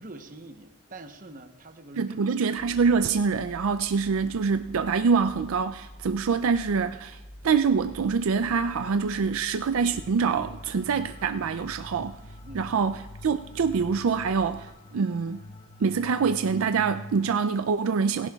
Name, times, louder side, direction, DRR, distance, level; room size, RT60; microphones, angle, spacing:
voice 1, 0.0-2.5 6.9-7.0 9.7-9.8 12.4-12.7, right 2 dB, 40° right, 0.9 m, -45 dB
voice 2, 2.0-7.2 7.4-12.2 12.5-15.4 15.8-18.3, right 5 dB, 75° right, 0.4 m, -25 dB
sound 1, 2.6-14.7, equal, 10° left, 1.4 m, -47 dB
sound 2, 9.9-17.4, left 2 dB, 25° left, 0.4 m, -46 dB
18.0 x 16.0 x 2.3 m
head